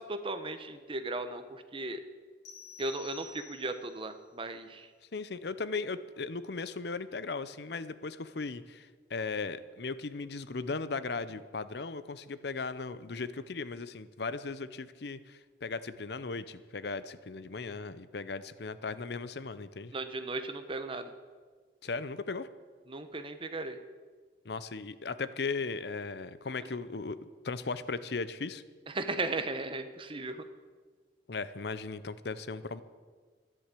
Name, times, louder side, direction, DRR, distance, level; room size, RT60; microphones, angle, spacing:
voice 1, 0.1-2.0 2.8-4.9 19.9-21.1 22.9-23.8 26.6-26.7 28.9-30.5, right 2 dB, 30° right, 9 dB, 1.0 m, -36 dB
sound 1, 2.4-4.0, left 5 dB, 85° left, 3.5 m, -50 dB
voice 2, 5.1-19.9 21.8-22.5 24.4-28.6 31.3-32.8, left 4 dB, 65° left, 15 dB, 0.7 m, -37 dB
13.5 x 11.0 x 8.3 m, 1.5 s
head